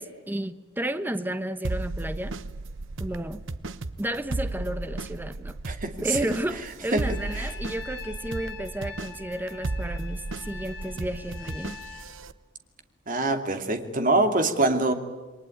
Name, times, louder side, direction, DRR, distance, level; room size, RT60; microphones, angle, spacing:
voice 1, 0.0-2.3 3.0-3.4 4.0-5.6 6.0-11.8, right 1 dB, 10° right, 11 dB, 0.9 m, -32 dB
sound 1, 1.6-12.3, right 2 dB, 70° right, 1.0 m, -35 dB
voice 2, 5.7-6.2 6.9-7.0 7.3-7.5 13.1-14.9, right 2 dB, 40° right, 6 dB, 2.6 m, -24 dB
Trumpet, 7.0-12.1, left 5 dB, 60° left, 3.7 m, -43 dB
28.5 x 22.5 x 9.2 m, 1.3 s
head